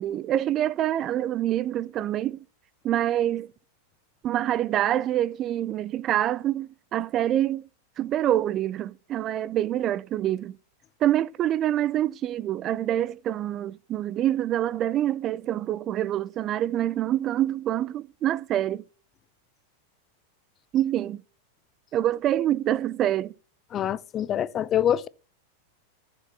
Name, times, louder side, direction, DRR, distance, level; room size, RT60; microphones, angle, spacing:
voice 1, 0.0-2.4 2.8-3.5 4.2-7.6 8.0-10.6 11.0-18.8 20.7-21.2 21.9-23.3, right 12 dB, 30° right, 0.4 m, -26 dB
voice 2, 23.7-25.1, left 10 dB, 30° left, 0.5 m, -25 dB
14.5 x 6.9 x 3.4 m
figure-of-eight pair, 90°, 0 cm